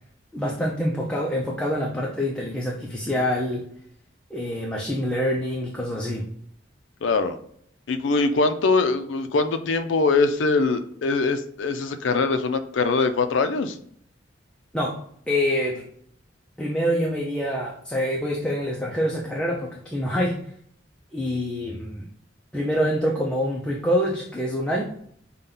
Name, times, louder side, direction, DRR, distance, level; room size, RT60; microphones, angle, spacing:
voice 1, 0.3-3.7 4.3-6.3 14.7-15.0 15.3-15.8 16.6-20.4 21.1-22.1 22.5-24.8, equal, 5° left, -3 dB, 0.5 m, -26 dB
voice 2, 7.0-7.4 7.9-13.8, left 3 dB, 75° left, 9 dB, 0.4 m, -22 dB
5.3 x 2.2 x 3.7 m, 0.65 s
head